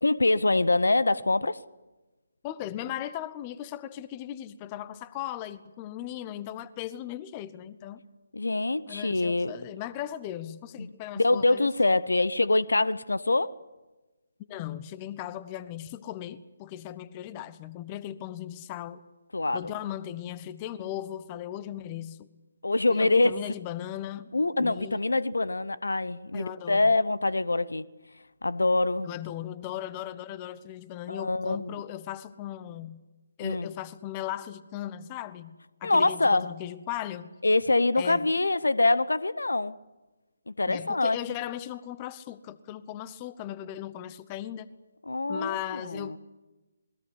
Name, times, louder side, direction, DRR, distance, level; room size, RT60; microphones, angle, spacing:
voice 1, 0.0-1.6 8.3-9.5 10.8-13.5 19.3-19.7 22.6-23.3 24.3-27.9 28.4-29.1 31.1-31.8 33.4-33.7 35.8-36.5 37.4-39.8 40.5-41.2 45.1-46.2, left 2 dB, 70° left, 0.9 m, -25 dB
voice 2, 2.4-8.0 8.9-11.7 14.5-19.0 19.5-22.3 22.9-24.3 24.6-25.1 26.3-26.9 29.0-33.0 33.4-35.6 35.8-37.3 38.0-38.3 40.7-44.7 45.3-46.2, left 12 dB, 20° left, 0.9 m, -37 dB
27.5 x 20.5 x 8.3 m
figure-of-eight pair, 145°, 0 cm